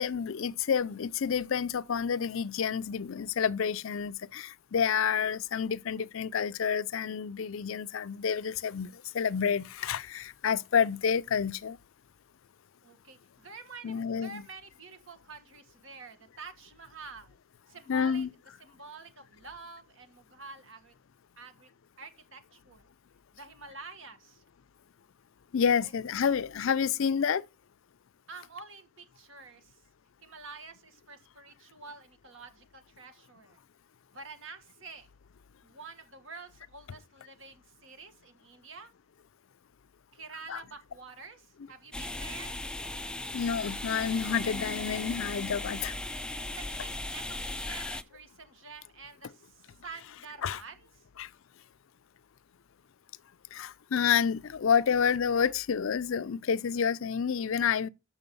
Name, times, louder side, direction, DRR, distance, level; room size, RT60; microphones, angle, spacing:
voice 1, 0.0-11.8 13.8-14.4 17.9-18.3 25.5-27.5 40.5-40.6 43.3-45.9 50.4-50.6 51.2-51.3 53.5-57.9, left 7 dB, 70° left, 0.5 m, -29 dB
voice 2, 12.8-17.4 17.7-18.3 18.6-20.9 21.4-21.7 22.0-22.9 23.3-24.4 25.8-25.9 28.3-29.8 30.2-33.6 34.1-35.1 35.6-38.9 40.1-42.6 46.3-50.9, right 4 dB, 65° right, 1.6 m, -48 dB
sound 1, 41.9-48.0, left 2 dB, 5° left, 0.4 m, -37 dB
8.0 x 6.2 x 5.3 m
head